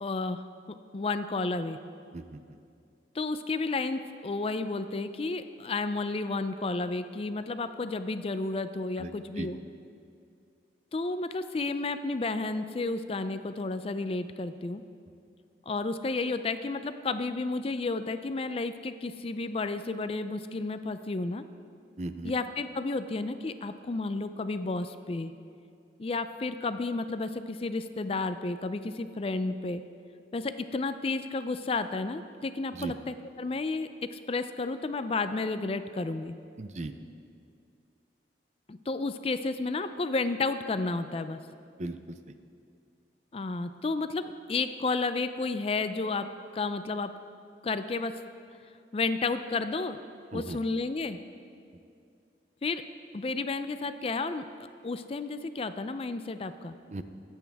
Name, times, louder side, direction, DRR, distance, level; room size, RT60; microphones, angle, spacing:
voice 1, 0.0-0.4 0.9-1.8 3.1-9.6 10.9-14.8 15.7-21.4 22.2-25.3 26.0-29.8 30.3-36.3 38.7-41.4 43.3-46.3 46.5-47.1 47.6-48.1 48.9-50.0 50.3-51.2 52.6-52.8 53.1-54.4 54.8-56.8, left 3 dB, 35° left, 10 dB, 0.4 m, -32 dB
voice 2, 9.0-9.5 22.0-22.3 32.7-32.9 36.6-36.9 41.8-42.3 50.3-50.6 56.9-57.0, right 2 dB, 40° right, 9 dB, 0.5 m, -37 dB
23.5 x 8.3 x 3.5 m, 2.4 s
head